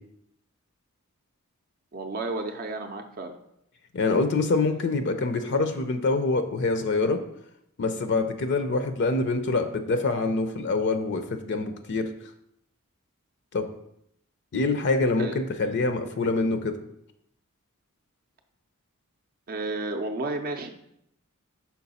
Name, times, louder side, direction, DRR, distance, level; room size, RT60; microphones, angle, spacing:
voice 1, 1.9-3.3 15.2-15.4 19.5-20.7, right 2 dB, 40° right, 4 dB, 0.5 m, -32 dB
voice 2, 3.9-7.2 7.8-12.1 13.5-13.7 14.5-16.8, left 3 dB, 55° left, 8 dB, 0.5 m, -25 dB
5.8 x 4.6 x 4.1 m, 0.76 s
head